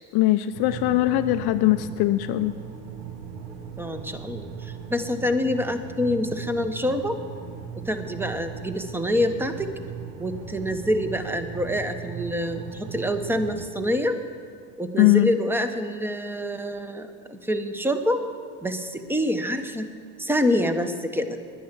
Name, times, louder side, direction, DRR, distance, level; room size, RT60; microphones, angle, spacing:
voice 1, 0.1-2.5 15.0-15.3, left 16 dB, 55° left, 10 dB, 0.6 m, -20 dB
sound 1, 0.5-13.7, right 7 dB, 60° right, 1.8 m, -38 dB
voice 2, 3.8-7.2 7.7-9.7 10.2-14.2 14.8-18.2 18.6-19.9 20.2-21.4, left 1 dB, 5° right, 8 dB, 1.0 m, -26 dB
10.5 x 10.5 x 8.2 m, 2.2 s
supercardioid pair, 90°, 46 cm